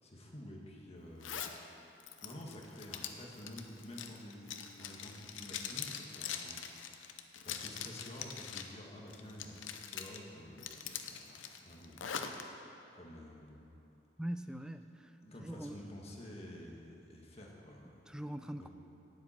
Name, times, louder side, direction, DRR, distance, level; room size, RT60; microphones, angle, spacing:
voice 1, 0.0-1.4 2.2-6.6 7.4-12.5 12.9-13.7 15.0-18.2 18.6-18.7, left 1 dB, 35° left, -1 dB, 1.6 m, -50 dB
Zipper (clothing), 1.2-1.6 2.0-8.7 9.1-10.2 10.6-12.4, left 8 dB, 85° left, 0.7 m, -43 dB
voice 2, 14.2-14.9 15.4-15.8 18.1-18.7, right 1 dB, 5° right, 9 dB, 0.3 m, -41 dB
17.5 x 7.6 x 4.4 m, 2.9 s
head